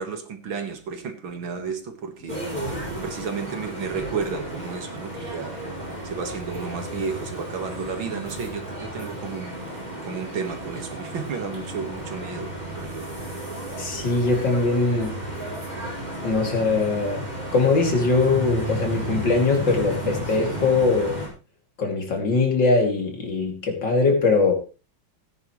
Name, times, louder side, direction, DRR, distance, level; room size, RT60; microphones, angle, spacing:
voice 1, 0.0-2.4 3.0-5.5 6.0-9.5 10.1-13.1, right 5 dB, 75° right, 6 dB, 2.4 m, -32 dB
sound 1, 2.3-21.3, right 1 dB, 20° right, 5.3 m, -33 dB
voice 2, 13.8-15.2 16.2-17.3 17.5-21.2 21.8-24.5, left 3 dB, 65° left, 2 dB, 3.4 m, -21 dB
18.0 x 9.7 x 3.1 m, 0.33 s
omnidirectional pair, 2.2 m